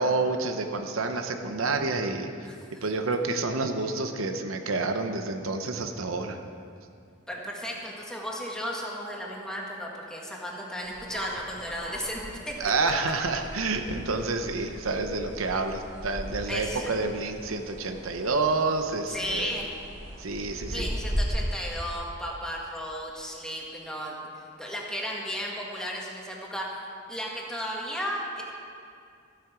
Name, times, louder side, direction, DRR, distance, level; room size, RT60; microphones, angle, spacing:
voice 1, 0.0-2.3 2.8-6.4 12.6-19.5 20.2-20.9, right 3 dB, 80° right, 6 dB, 0.8 m, -28 dB
voice 2, 7.3-12.6 16.5-16.9 19.1-19.7 20.7-24.2 24.6-26.7 27.1-28.4, equal, 5° left, -3 dB, 1.8 m, -34 dB
sound 1, 10.8-21.3, equal, 50° right, 3.6 m, -38 dB
14.5 x 8.6 x 6.1 m, 2.4 s
head